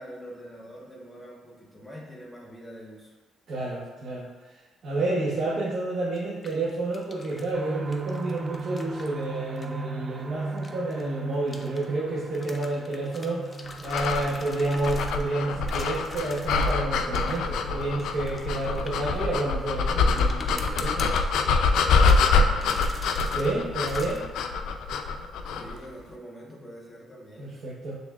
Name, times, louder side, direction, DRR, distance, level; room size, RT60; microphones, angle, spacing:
voice 1, 0.0-3.2 21.8-23.1 25.5-27.6, equal, 15° left, -4 dB, 1.1 m, -45 dB
voice 2, 3.5-4.3 4.8-21.1 23.3-24.2 27.4-28.0, right 2 dB, 60° right, -6 dB, 0.9 m, -30 dB
Handling Can, 6.1-7.6 7.9-9.7 10.6-11.9 12.3-15.3 15.7-16.8 17.1-19.5 20.2-21.6 22.0-22.3 22.6-23.5 23.8-24.2, left 3 dB, 30° left, 0.5 m, -43 dB
sound 1, 7.5-21.0 21.5-21.6 22.0-22.1, right 3 dB, 30° right, 0.4 m, -38 dB
sound 2, 13.9-25.8, left 4 dB, 85° left, 0.3 m, -25 dB
6.2 x 3.4 x 2.4 m, 1.3 s
cardioid pair, 90°, 0 cm